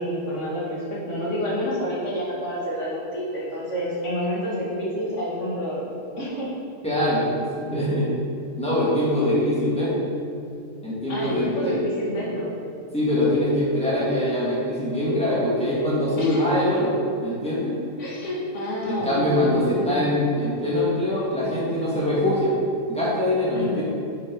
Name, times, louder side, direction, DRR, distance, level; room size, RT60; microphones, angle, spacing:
voice 1, 0.0-5.9 6.2-6.5 11.1-12.6 16.2-16.5 18.0-20.0 23.5-23.8, equal, 75° left, -5 dB, 2.1 m, -28 dB
voice 2, 6.8-8.2 8.6-10.1 10.8-11.8 12.9-17.8 18.8-22.6 22.9-23.8, left 1 dB, 5° left, -8 dB, 2.0 m, -23 dB
9.2 x 5.5 x 4.0 m, 2.4 s
omnidirectional pair, 1.3 m